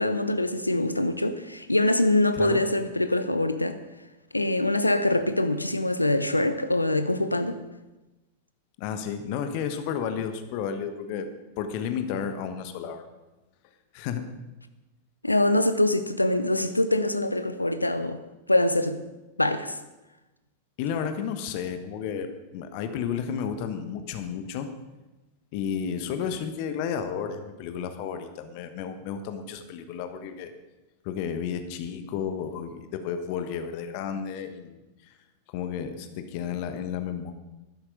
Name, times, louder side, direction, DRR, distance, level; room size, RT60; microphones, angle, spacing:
voice 1, 0.0-3.8 4.3-7.6 15.2-18.2 18.5-19.0 19.4-19.7, left 1 dB, 85° left, 0.8 m, -24 dB
voice 2, 8.8-11.3 11.6-13.1 13.9-14.3 20.8-24.7 25.5-30.5 31.0-34.8 35.5-37.3, left 7 dB, 45° left, 1.2 m, -32 dB
12.5 x 11.0 x 5.0 m
figure-of-eight pair, 90°, 0 cm